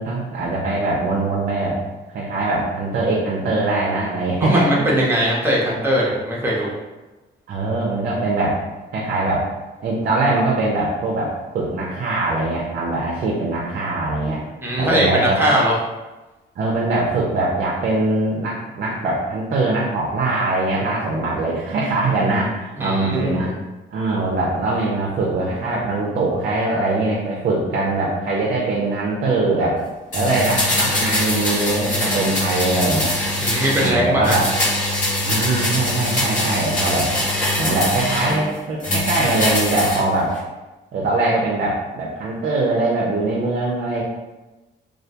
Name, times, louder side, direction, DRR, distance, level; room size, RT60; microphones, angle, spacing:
voice 1, 0.0-1.8 2.1-4.9 5.6-5.7 7.5-8.6 8.9-9.5 9.8-14.4 14.8-15.5 16.6-23.5 23.9-29.8 30.1-33.1 33.8-34.5 35.2-37.1 37.6-40.3 40.9-44.0, right 2 dB, 50° right, -3 dB, 0.5 m, -22 dB
voice 2, 4.4-6.8 14.6-15.7 22.8-23.5 33.4-34.4, equal, 10° right, -5 dB, 0.7 m, -20 dB
sound 1, 30.1-33.9 34.2-38.4 38.8-40.0 40.3-40.4, left 1 dB, 40° left, 1.1 m, -22 dB
2.3 x 2.1 x 2.7 m, 1.1 s
cardioid pair, 90°, 20 cm